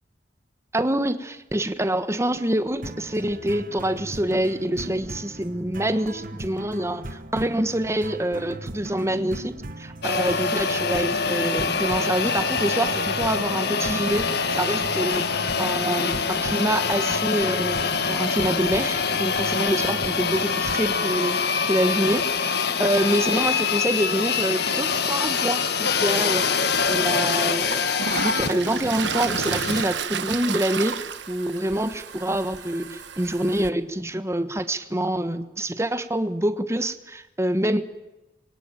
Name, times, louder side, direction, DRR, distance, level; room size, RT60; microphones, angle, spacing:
voice 1, 0.7-17.8 18.1-22.3 22.6-31.0 31.3-37.8, right 1 dB, 15° right, 11 dB, 1.3 m, -26 dB
sound 1, 2.8-21.0, right 1 dB, 50° right, 1.6 m, -38 dB
sound 2, 10.0-29.8, left 5 dB, 60° left, 1.6 m, -25 dB
Toilet flush, 26.9-27.0 27.5-33.7, right 6 dB, 75° right, 1.3 m, -31 dB
26.5 x 23.0 x 9.1 m, 1.0 s
head